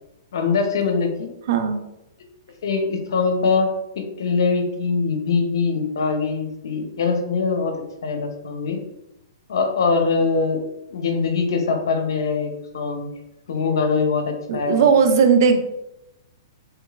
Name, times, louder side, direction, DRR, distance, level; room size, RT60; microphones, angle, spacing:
voice 1, 0.3-1.3 2.6-3.7 4.0-7.7 8.0-8.8 9.5-10.6 10.9-13.1 13.5-14.8, left 4 dB, 70° left, 5 dB, 0.6 m, -22 dB
voice 2, 1.5-1.8 14.5-15.6, right 6 dB, 60° right, 7 dB, 0.5 m, -17 dB
3.2 x 3.0 x 2.4 m, 0.87 s
hypercardioid pair, 120°, 2 cm